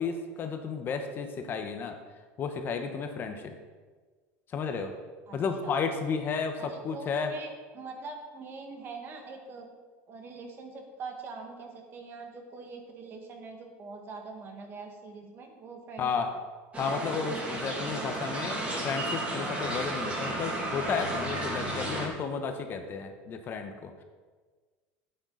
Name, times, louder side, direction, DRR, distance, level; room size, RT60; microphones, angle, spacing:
voice 1, 0.0-2.0 2.4-3.5 4.5-4.9 5.3-7.4 16.0-16.3 16.7-24.0, left 5 dB, 35° left, 6 dB, 1.0 m, -33 dB
voice 2, 6.6-9.7 10.1-16.1 17.5-17.6 18.0-18.1, right 4 dB, 35° right, 3 dB, 1.7 m, -43 dB
sound 1, 16.7-22.1, right 1 dB, 20° right, 2.3 m, -33 dB
11.5 x 8.9 x 4.0 m, 1.4 s
supercardioid pair, 135°, 6 cm